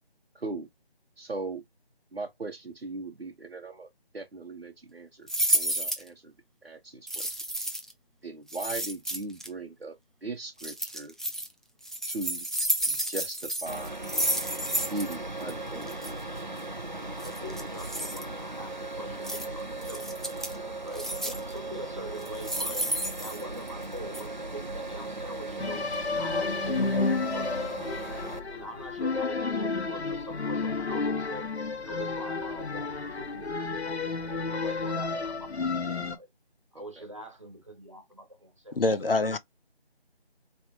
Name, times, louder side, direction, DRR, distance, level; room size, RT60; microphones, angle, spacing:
voice 1, 0.3-0.7 1.2-1.6 2.1-6.3 6.6-7.4 8.2-11.1 12.1-12.4 12.9-14.0 14.9-16.4 34.1-34.3 36.7-37.0, right 2 dB, 75° right, 1.1 m, -39 dB
sound 1, 5.3-6.1 7.1-7.9 8.5-9.5 10.6-11.5 11.8-15.2 15.4-15.5 15.8-16.1 17.2-18.2 19.2-19.5 19.8-20.6 20.9-21.5 22.2-23.8 24.1-24.2, right 1 dB, ahead, 0.4 m, -31 dB
sound 2, 13.7-28.4, right 2 dB, 45° right, 0.6 m, -37 dB
voice 2, 17.2-20.2 20.8-22.9 23.2-25.8 26.2-27.8 28.5-31.5 31.8-33.5 34.2-36.3 36.7-39.2, equal, 30° right, 1.5 m, -43 dB
sound 3, 25.6-36.2, left 4 dB, 85° left, 0.9 m, -31 dB
voice 3, 38.8-39.4, left 2 dB, 60° left, 0.6 m, -25 dB
4.3 x 3.3 x 2.8 m
figure-of-eight pair, 180°, 32 cm